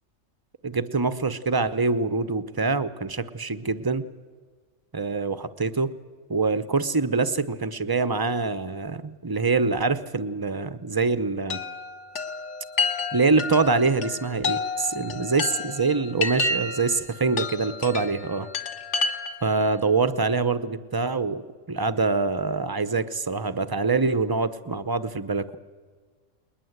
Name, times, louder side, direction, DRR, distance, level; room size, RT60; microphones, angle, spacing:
voice 1, 0.6-4.0 4.9-5.9 6.3-11.6 13.1-18.5 19.4-21.4 21.7-25.6, right 4 dB, 20° right, 14 dB, 0.6 m, -25 dB
Chime, 11.5-19.6, left 4 dB, 60° left, 1.7 m, -30 dB
21.0 x 20.5 x 8.0 m, 1.5 s
omnidirectional pair, 1.4 m